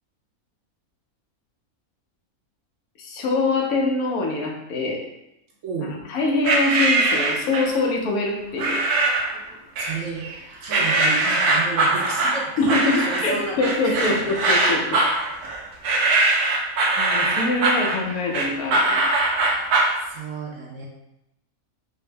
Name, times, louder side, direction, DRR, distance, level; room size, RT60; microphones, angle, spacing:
voice 1, 3.0-5.0 5.9-8.8 12.6-15.0 15.8-15.9 17.0-19.1, left 3 dB, 75° left, 0 dB, 1.1 m, -24 dB
voice 2, 5.6-6.1 9.8-10.3 10.6-14.2 20.0-20.9, right 4 dB, 65° right, -2 dB, 0.9 m, -31 dB
sound 1, 6.4-7.8 8.6-9.3 9.8-10.3 10.7-20.0, right 2 dB, 90° right, 1.1 m, -21 dB
4.3 x 2.0 x 3.2 m, 0.86 s
omnidirectional pair, 1.6 m